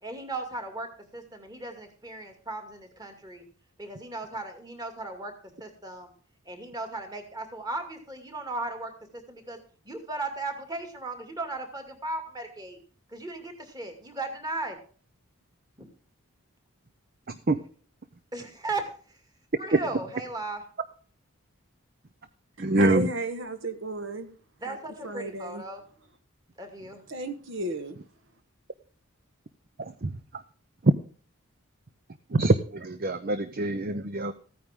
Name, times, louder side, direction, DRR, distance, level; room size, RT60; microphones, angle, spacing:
voice 1, 0.0-3.4 3.8-5.3 5.6-6.1 6.5-9.6 9.9-12.8 13.1-14.8 15.8-15.9 18.3-18.9 19.6-20.6 24.6-25.8 26.6-27.0, right 2 dB, 20° right, 2.3 m, -36 dB
voice 2, 17.3-17.6 19.7-19.8 22.6-23.1 29.8-30.4 30.8-30.9 32.3-34.3, right 2 dB, 45° right, 0.7 m, -25 dB
voice 3, 22.6-24.3 24.7-24.8 25.0-25.6 27.1-28.0, right 2 dB, 60° right, 1.4 m, -33 dB
15.0 x 9.4 x 3.6 m
head